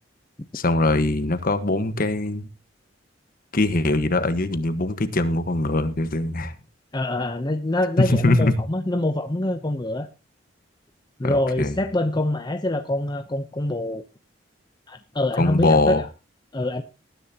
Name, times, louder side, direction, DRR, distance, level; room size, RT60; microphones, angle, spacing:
voice 1, 0.5-2.5 3.5-6.5 8.0-8.5 11.2-11.8 15.4-16.0, left 2 dB, 50° left, 1.4 m, -22 dB
voice 2, 6.9-10.1 11.2-14.0 14.9-16.0 16.5-16.8, left 1 dB, 25° left, 0.8 m, -25 dB
19.5 x 10.5 x 2.9 m
head